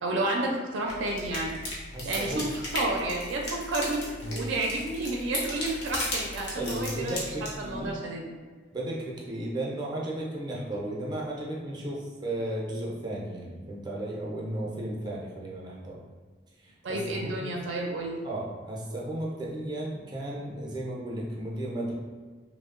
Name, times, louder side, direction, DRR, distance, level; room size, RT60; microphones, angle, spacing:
voice 1, 0.0-1.6 2.0-2.5 2.7-7.2 7.6-8.3 16.8-18.2, right 2 dB, 85° right, -1 dB, 0.4 m, -31 dB
sound 1, 0.9-7.9, left 1 dB, 70° left, 0.7 m, -36 dB
voice 2, 1.9-2.5 4.2-4.4 6.6-7.9 8.7-16.0 16.6-17.5 18.2-21.9, right 1 dB, 25° right, -4 dB, 0.4 m, -34 dB
2.7 x 2.0 x 2.4 m, 1.5 s
head